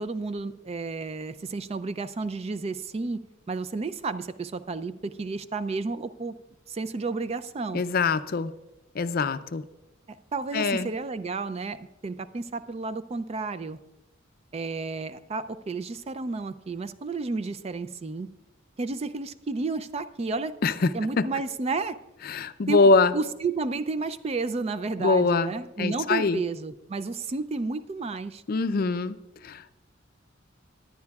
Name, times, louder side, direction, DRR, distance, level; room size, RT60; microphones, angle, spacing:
voice 1, 0.0-3.2 3.5-6.3 6.7-7.8 10.1-13.8 14.5-18.3 18.8-20.6 20.9-22.0 22.7-28.4, right 3 dB, 30° right, 13 dB, 0.4 m, -31 dB
voice 2, 7.7-8.5 9.0-9.6 10.5-10.9 20.6-21.2 22.3-23.1 25.0-25.5 25.8-26.4 28.5-29.2 29.4-29.8, left 4 dB, 50° left, 12 dB, 0.4 m, -23 dB
19.0 x 10.5 x 2.3 m, 0.92 s
head